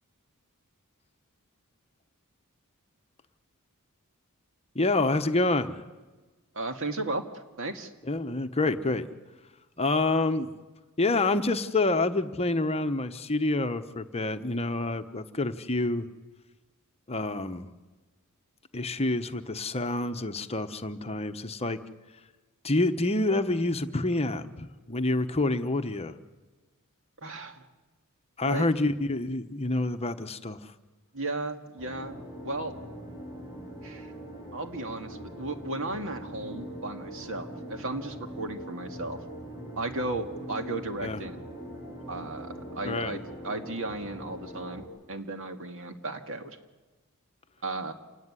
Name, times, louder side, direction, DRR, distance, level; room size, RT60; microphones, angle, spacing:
voice 1, 4.7-5.8 8.1-9.1 9.8-10.5 11.0-16.1 17.1-17.7 18.7-21.8 22.6-26.2 28.4-30.7 41.0-41.2 42.8-43.2, left 2 dB, 30° left, 9 dB, 1.0 m, -27 dB
voice 2, 6.5-7.9 27.2-27.6 28.4-28.7 31.1-32.7 33.8-34.1 34.5-39.2 39.8-41.4 42.1-46.6 47.6-47.9, right 2 dB, 65° right, 6 dB, 2.1 m, -35 dB
sound 1, 31.8-44.8, equal, 20° right, 7.3 m, -42 dB
28.0 x 17.5 x 9.7 m, 1.2 s
head